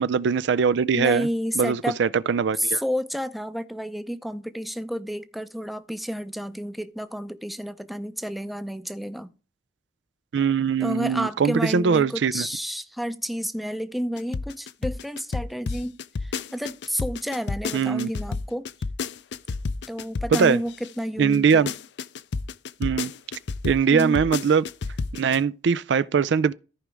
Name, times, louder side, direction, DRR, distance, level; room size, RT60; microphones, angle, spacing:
voice 1, 0.0-1.3 1.6-2.8 10.3-12.5 17.7-18.1 20.3-20.6 21.2-21.7 22.8-23.1 23.6-24.7 25.2-26.5, right 6 dB, 75° right, 0.4 m, -21 dB
voice 2, 0.9-2.0 2.5-9.3 10.8-18.7 19.9-21.7 23.9-24.2, equal, ahead, 0.5 m, -30 dB
sound 1, 14.2-20.9 21.3-25.4, left 4 dB, 65° left, 0.5 m, -30 dB
14.0 x 5.0 x 3.4 m
head